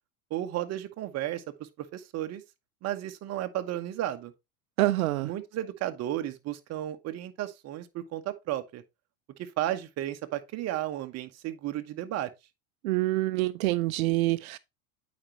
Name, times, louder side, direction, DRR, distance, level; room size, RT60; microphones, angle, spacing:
voice 1, 0.3-2.4 2.8-4.3 5.2-8.8 9.4-12.3, right 13 dB, 40° right, 1.1 m, -33 dB
voice 2, 4.8-5.3 12.8-14.6, right 18 dB, 85° right, 0.5 m, -26 dB
8.6 x 5.2 x 3.0 m
supercardioid pair, 115°, 41 cm